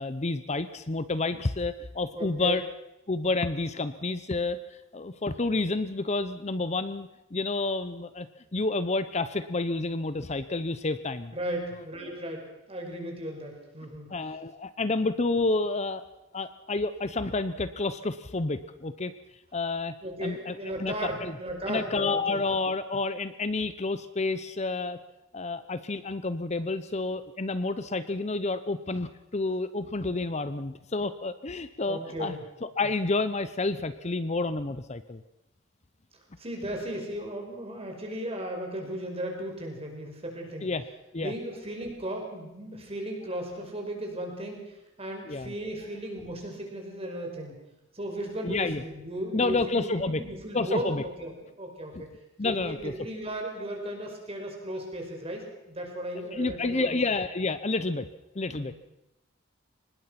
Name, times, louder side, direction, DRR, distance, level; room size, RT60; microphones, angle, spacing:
voice 1, 0.0-2.6 3.1-4.6 4.9-8.3 8.5-11.4 14.1-16.0 16.3-19.1 19.5-19.9 20.2-21.3 21.7-25.0 25.3-32.4 32.6-35.2 40.6-40.8 41.1-41.3 45.3-45.5 48.4-48.8 49.3-50.2 50.5-51.0 51.9-52.0 52.4-52.9 56.3-58.1 58.3-58.7, left 3 dB, 35° left, 12 dB, 0.8 m, -29 dB
voice 2, 2.1-2.6 11.3-14.1 20.0-22.4 31.9-32.4 36.4-40.7 41.2-47.5 47.9-52.1 52.4-56.9 58.5-58.7, right 1 dB, 30° right, 2 dB, 5.3 m, -36 dB
24.0 x 20.5 x 5.9 m, 0.90 s
head